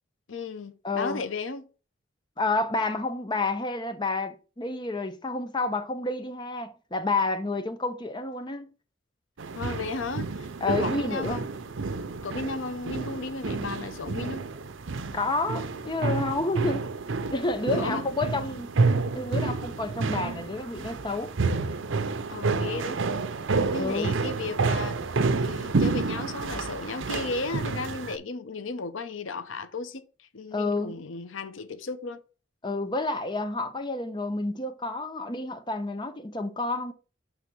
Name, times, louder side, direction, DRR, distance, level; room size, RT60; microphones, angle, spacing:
voice 1, 0.3-1.7 9.5-11.4 12.2-14.5 17.7-18.0 22.3-23.0 23.7-32.2, left 3 dB, 85° left, 0.7 m, -35 dB
voice 2, 0.8-1.2 2.4-8.7 10.6-11.5 15.1-16.9 17.3-18.7 19.1-21.3 23.8-24.1 30.5-31.0 32.6-36.9, left 2 dB, 25° left, 0.7 m, -29 dB
sound 1, 9.4-28.2, right 4 dB, 75° right, 0.7 m, -29 dB
6.8 x 3.5 x 6.1 m
head